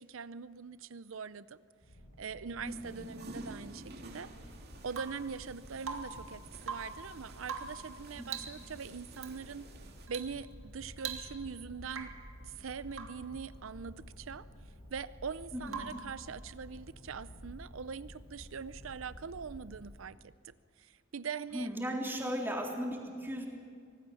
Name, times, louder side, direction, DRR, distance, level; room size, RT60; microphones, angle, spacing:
voice 1, 0.0-1.6 2.2-4.3 4.8-9.7 10.1-12.1 12.4-14.5 14.9-21.7, right 6 dB, 70° right, 16 dB, 0.6 m, -42 dB
sound 1, 1.8-19.9, equal, 55° left, 4.4 m, -52 dB
voice 2, 2.6-3.1 8.2-8.5 15.5-15.9 21.5-23.5, equal, 10° right, -1 dB, 3.6 m, -37 dB
sound 2, 2.6-10.1, right 2 dB, 55° right, 2.6 m, -52 dB
Rain / Water tap faucet / Drip, 4.9-5.3 5.8-6.3 6.6-7.0 7.4-7.9 8.3-8.6 9.2-9.4 10.1-10.4 10.6-10.7 11.0-11.6 11.9-12.3 12.9-13.3 15.7-16.1 18.0-18.1, right 6 dB, 90° right, 2.2 m, -42 dB
25.0 x 18.5 x 7.1 m, 2.1 s
head